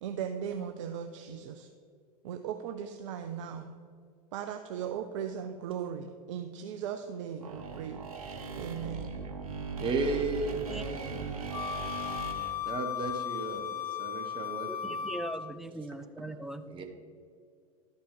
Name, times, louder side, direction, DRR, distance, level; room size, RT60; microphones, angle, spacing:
voice 1, 0.0-1.7 2.2-3.7 4.3-8.0 8.6-9.0 11.0-11.3, right 8 dB, 55° right, 7 dB, 0.5 m, -38 dB
sound 1, 7.4-12.5, right 5 dB, 70° right, 1.1 m, -39 dB
voice 2, 9.8-11.7 12.6-15.1 16.2-16.3 16.7-16.8, right 3 dB, 25° right, 5 dB, 1.2 m, -35 dB
Wind instrument woodwind instrument, 11.5-15.6, left 9 dB, 80° left, 0.4 m, -36 dB
voice 3, 14.7-16.7, right 1 dB, ahead, 9 dB, 0.4 m, -40 dB
12.0 x 5.3 x 5.0 m, 2.2 s
figure-of-eight pair, 85°, 19 cm